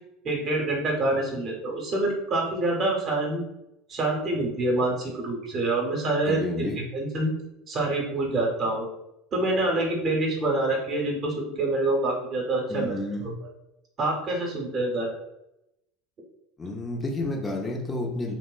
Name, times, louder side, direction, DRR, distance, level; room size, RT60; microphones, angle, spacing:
voice 1, 0.2-3.4 3.9-7.3 7.7-8.8 9.3-12.9 14.0-15.1, right 2 dB, 40° right, -1 dB, 0.8 m, -26 dB
voice 2, 6.2-6.9 12.7-13.4 16.6-18.3, left 2 dB, 20° left, 0 dB, 0.5 m, -30 dB
2.9 x 2.0 x 2.3 m, 0.87 s
figure-of-eight pair, 75°, 0 cm